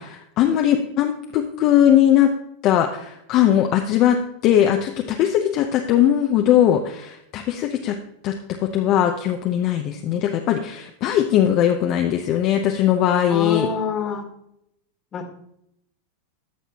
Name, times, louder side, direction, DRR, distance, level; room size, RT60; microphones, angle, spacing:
voice 1, 0.0-2.3 2.6-8.0 8.2-13.7, left 10 dB, 45° left, 3 dB, 0.7 m, -19 dB
voice 2, 13.3-14.3 15.1-15.3, left 5 dB, 30° left, 4 dB, 1.6 m, -26 dB
14.0 x 5.9 x 2.9 m, 0.77 s
supercardioid pair, 120°, 0 cm